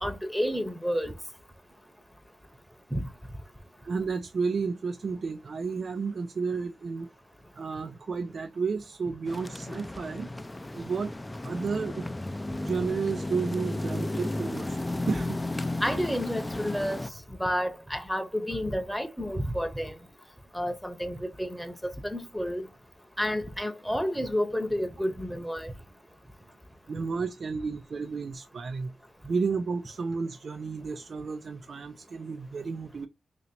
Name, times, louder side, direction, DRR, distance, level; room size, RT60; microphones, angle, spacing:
voice 1, 0.0-1.1 2.9-3.0 15.8-17.1 17.4-19.9 20.5-22.7 23.2-25.7, equal, ahead, 0.9 m, -30 dB
voice 2, 3.8-7.1 7.6-10.3 10.7-11.1 11.4-12.1 12.6-14.8 15.1-15.4 26.9-28.9 29.3-33.1, right 5 dB, 60° right, 0.4 m, -32 dB
sound 1, 9.2-17.1, left 2 dB, 20° left, 0.4 m, -34 dB
2.8 x 2.8 x 4.2 m
cardioid pair, 55°, 0 cm